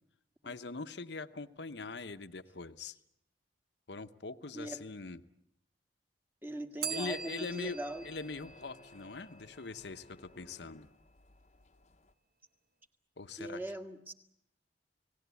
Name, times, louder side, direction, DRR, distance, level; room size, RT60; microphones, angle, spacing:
voice 1, 0.4-3.0 3.9-5.2 6.9-10.9 13.2-13.6, left 3 dB, 70° left, 11 dB, 1.0 m, -42 dB
voice 2, 4.5-4.8 6.4-8.0 13.4-14.1, right 1 dB, 10° right, 6 dB, 1.7 m, -41 dB
Bell, 6.8-9.6, right 6 dB, 55° right, 1.5 m, -43 dB
sound 1, 7.0-12.1, left 2 dB, 40° left, 1.0 m, -58 dB
30.0 x 18.0 x 8.3 m, 0.77 s
head